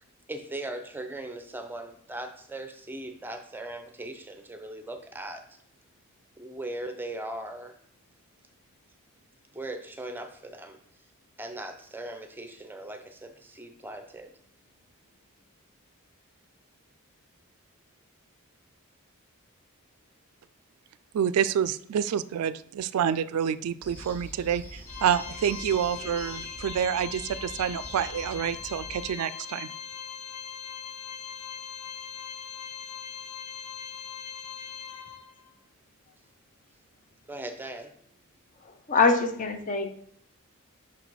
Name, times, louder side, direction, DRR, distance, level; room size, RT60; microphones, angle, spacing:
voice 1, 0.3-5.5 6.4-7.8 8.4-8.6 9.5-10.8 11.4-14.4 37.3-37.9, right 1 dB, 10° right, 6 dB, 0.6 m, -39 dB
voice 2, 21.1-29.7, right 8 dB, 85° right, 16 dB, 0.3 m, -28 dB
sound 1, 23.8-29.1, equal, 10° left, 1.1 m, -44 dB
Organ, 24.9-35.5, left 8 dB, 80° left, 0.8 m, -40 dB
voice 3, 38.9-39.9, left 4 dB, 35° left, 6 dB, 0.7 m, -23 dB
6.0 x 4.0 x 4.6 m, 0.65 s
head